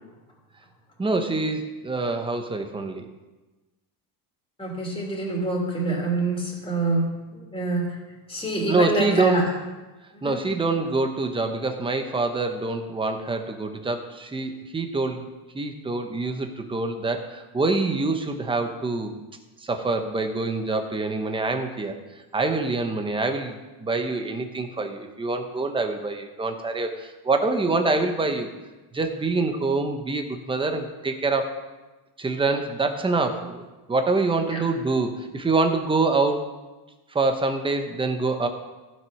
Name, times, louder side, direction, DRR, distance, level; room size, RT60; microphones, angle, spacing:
voice 1, 1.0-3.1 8.7-9.6 10.2-15.3 15.5-19.1 19.6-22.0 22.3-28.5 28.9-31.5 32.2-36.5 37.1-38.5, right 3 dB, 10° right, 5 dB, 0.9 m, -25 dB
voice 2, 4.6-8.0 8.3-9.5 10.1-10.4 34.5-34.6, right 2 dB, 10° left, -2 dB, 3.0 m, -26 dB
14.5 x 6.3 x 5.9 m, 1.2 s
cardioid pair, 150°, 50 cm